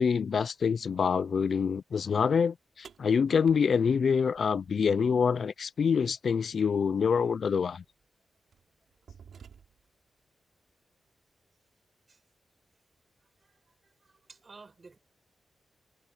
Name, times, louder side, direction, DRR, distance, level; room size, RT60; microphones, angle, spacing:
voice 1, 0.0-7.8, left 6 dB, 55° left, 0.4 m, -26 dB
sound 1, 2.8-5.0 6.9-7.0 7.8-8.0 8.5-10.0, right 7 dB, 75° right, 5.3 m, -53 dB
voice 2, 13.4-15.0, right 4 dB, 30° right, 5.5 m, -54 dB
wide cardioid pair, 170°, 0 cm